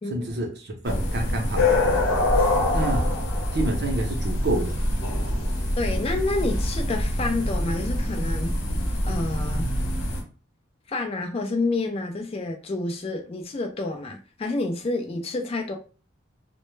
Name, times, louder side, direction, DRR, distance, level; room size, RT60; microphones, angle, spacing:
voice 1, 0.1-1.8 2.7-3.2 3.5-4.8, right 1 dB, 55° right, 0.6 m, -28 dB
sound 1, 0.8-10.2, left 1 dB, 80° left, 0.8 m, -25 dB
voice 2, 5.8-8.6 9.0-9.7 10.9-15.8, left 2 dB, 30° left, 0.3 m, -29 dB
2.1 x 2.0 x 3.1 m
head